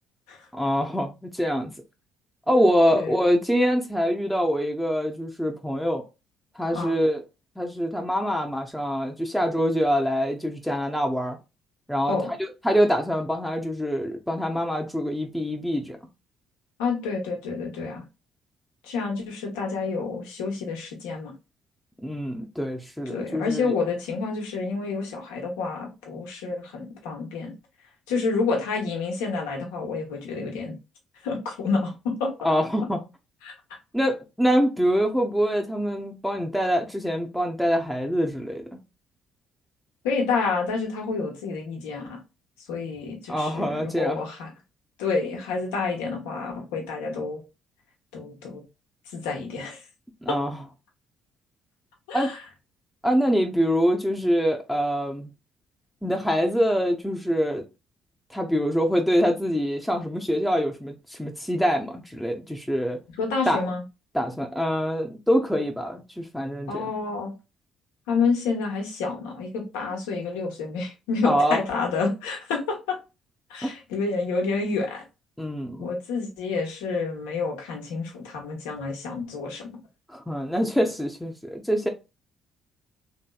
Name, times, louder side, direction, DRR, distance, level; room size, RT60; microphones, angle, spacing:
voice 1, 0.5-1.7 2.5-6.0 6.5-7.2 7.6-11.4 11.9-12.2 12.6-16.0 22.0-23.8 32.4-33.0 33.9-38.8 43.3-44.2 50.2-50.6 52.1-52.3 53.0-55.3 56.0-57.6 58.3-63.0 63.5-63.6 64.1-66.9 71.2-71.6 73.6-73.7 75.4-75.9 80.1-81.9, equal, 5° left, 0.6 m, -25 dB
voice 2, 16.8-18.0 18.8-21.3 23.1-27.5 28.1-30.7 31.2-32.3 33.4-33.5 40.0-42.2 42.7-44.5 45.0-47.4 48.1-48.6 49.1-49.8 50.3-50.4 52.1-52.4 63.2-63.8 66.7-67.3 68.1-73.0 73.5-75.0 75.8-79.7, left 4 dB, 85° left, 0.9 m, -29 dB
3.0 x 2.8 x 2.2 m
hypercardioid pair, 55°, 0 cm